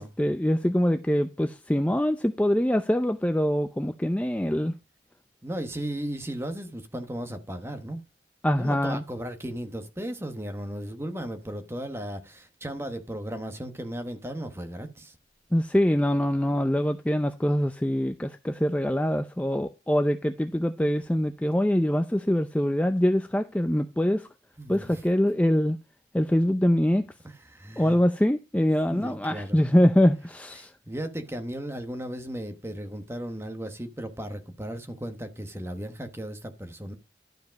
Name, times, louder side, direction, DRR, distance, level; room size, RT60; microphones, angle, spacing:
voice 1, 0.0-4.7 8.4-9.0 15.5-24.3 24.7-25.8 26.1-27.0 27.8-30.7, equal, 5° left, 0.4 m, -24 dB
voice 2, 5.4-8.0 8.6-15.2 24.6-25.0 27.2-28.0 28.9-29.6 30.6-36.9, right 1 dB, 15° right, 1.0 m, -36 dB
12.0 x 5.1 x 5.1 m
head